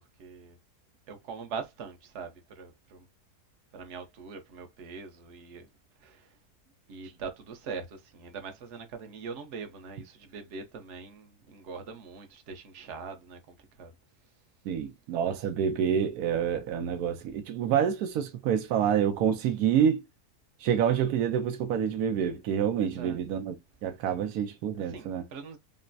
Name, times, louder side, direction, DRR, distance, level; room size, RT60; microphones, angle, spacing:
voice 1, 0.2-0.6 1.1-3.1 3.7-5.7 6.0-6.4 6.9-13.9 22.8-23.2 24.9-25.6, right 5 dB, 55° right, 1.1 m, -42 dB
voice 2, 14.6-20.0 20.6-23.6 23.8-25.2, right 8 dB, 80° right, 1.1 m, -27 dB
5.4 x 2.0 x 2.6 m
omnidirectional pair, 1.6 m